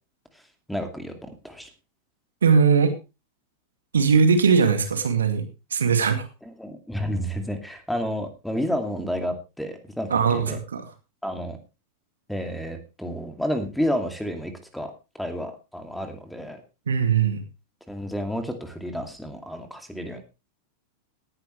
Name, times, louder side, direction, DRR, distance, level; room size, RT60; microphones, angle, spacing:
voice 1, 0.7-1.7 6.4-10.6 11.2-11.6 12.3-16.6 17.9-20.2, equal, ahead, 6 dB, 2.5 m, -30 dB
voice 2, 2.4-2.9 3.9-5.4 5.7-6.3 10.1-10.9 16.9-17.4, right 5 dB, 70° right, 6 dB, 2.3 m, -20 dB
18.5 x 10.5 x 3.2 m, 0.29 s
figure-of-eight pair, 90°, 0 cm